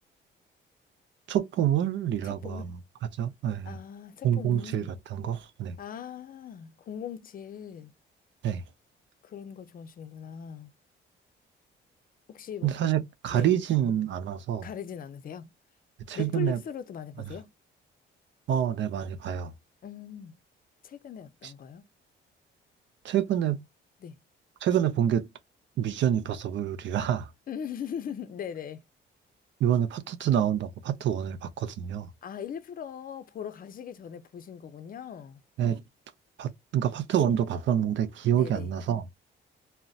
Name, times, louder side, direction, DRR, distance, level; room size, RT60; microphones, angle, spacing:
voice 1, 1.3-2.7 3.2-3.8 4.2-4.8 5.1-5.8 8.4-8.6 12.6-14.7 16.1-16.6 18.5-19.5 21.4-21.5 23.0-23.6 24.6-25.3 25.8-27.3 29.6-32.1 35.6-35.8 36.4-39.0, right 10 dB, 70° right, 0.5 m, -27 dB
voice 2, 2.2-2.7 3.6-4.9 5.8-7.9 9.2-10.7 12.3-12.7 13.3-13.5 14.6-15.5 16.1-17.5 19.8-20.3 20.8-21.8 24.0-24.2 27.5-28.8 32.2-35.4 38.3-38.7, left 8 dB, 45° left, 0.5 m, -40 dB
3.9 x 2.1 x 2.3 m
cardioid pair, 90°, 20 cm